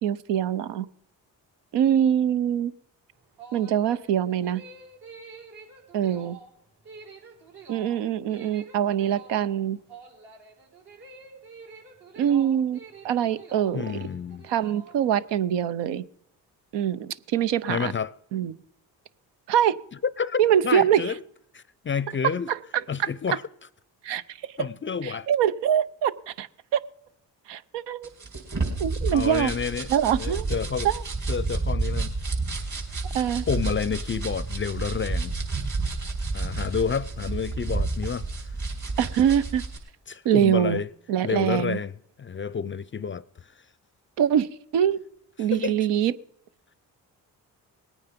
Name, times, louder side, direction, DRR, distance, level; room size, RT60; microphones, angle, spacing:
voice 1, 0.0-0.9 1.7-2.7 3.5-4.6 5.9-6.4 7.7-9.8 12.2-12.8 13.0-13.8 14.4-16.0 16.7-17.9 18.3-18.5 19.5-19.8 20.4-21.0 22.5-23.1 24.0-24.4 25.0-26.8 27.5-28.1 28.8-29.5 29.9-30.5 30.8-31.0 33.1-33.5 39.0-39.6 40.2-40.8 41.1-41.8 44.2-45.0 45.4-46.1, right 9 dB, 80° right, 0.8 m, -24 dB
sound 1, 3.1-15.3, right 4 dB, 65° right, 4.3 m, -47 dB
voice 2, 13.7-14.5 17.7-18.1 20.2-21.2 21.5-22.5 22.9-23.4 24.6-25.3 29.1-30.9 31.3-32.1 33.5-35.4 36.3-38.5 40.1-40.9 41.2-41.9 42.2-43.5 45.4-45.8, left 6 dB, 30° left, 0.5 m, -29 dB
sound 2, 28.0-39.8, right 3 dB, 45° right, 5.1 m, -30 dB
19.5 x 9.2 x 5.2 m
supercardioid pair, 60°, 41 cm